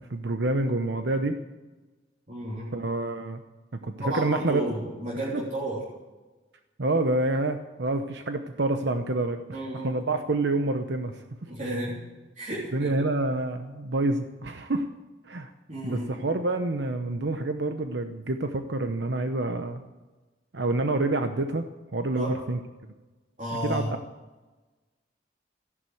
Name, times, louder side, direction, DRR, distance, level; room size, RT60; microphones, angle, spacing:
voice 1, 0.0-1.4 2.7-3.4 3.8-4.6 6.8-9.6 9.8-11.2 12.7-14.9 15.2-15.5 15.8-19.8 20.5-21.6 21.9-22.6 23.6-23.9, right 2 dB, 80° right, 7 dB, 0.9 m, -27 dB
voice 2, 2.3-2.7 4.0-5.8 9.5-10.0 11.5-12.0 12.4-12.9 15.7-16.1 22.1-22.4 23.4-23.9, right 1 dB, 45° right, -6 dB, 3.6 m, -32 dB
14.5 x 11.0 x 7.8 m, 1.2 s
head